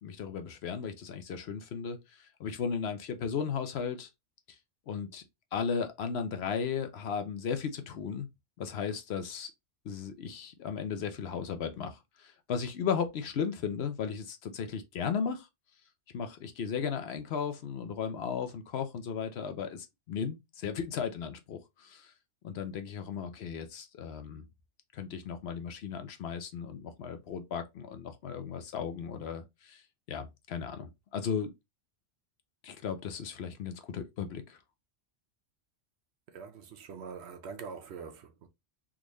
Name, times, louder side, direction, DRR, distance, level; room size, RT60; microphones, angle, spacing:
voice 1, 0.0-4.1 4.9-5.2 5.5-8.3 8.6-9.5 9.8-15.5 16.1-22.1 22.4-24.4 24.9-29.8 30.1-31.5 32.6-34.6, left 6 dB, 65° left, 0.8 m, -35 dB
voice 2, 36.3-38.5, right 5 dB, 70° right, 0.9 m, -44 dB
3.6 x 2.5 x 3.0 m
omnidirectional pair, 1.2 m